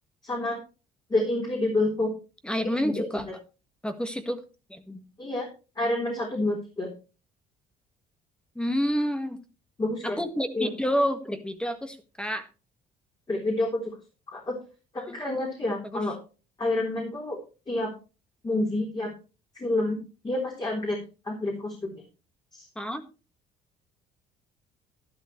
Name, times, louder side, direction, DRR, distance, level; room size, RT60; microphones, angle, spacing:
voice 1, 0.2-0.6 1.1-2.1 2.8-3.2 5.2-5.5 5.8-6.9 9.8-10.2 10.5-10.7 13.3-13.8 14.3-14.5 15.1-16.2 16.6-17.4 17.7-17.9 18.4-19.1 19.6-20.0 20.2-21.0 21.2-22.0 22.5-22.6, left 2 dB, 25° left, -1 dB, 3.9 m, -28 dB
voice 2, 2.4-3.3 3.8-4.4 4.7-5.0 8.5-9.4 10.0-12.5 15.0-15.2 15.8-16.0 22.7-23.0, equal, 5° left, 8 dB, 1.6 m, -29 dB
12.0 x 11.0 x 3.2 m, 0.33 s
cardioid pair, 110°, 17 cm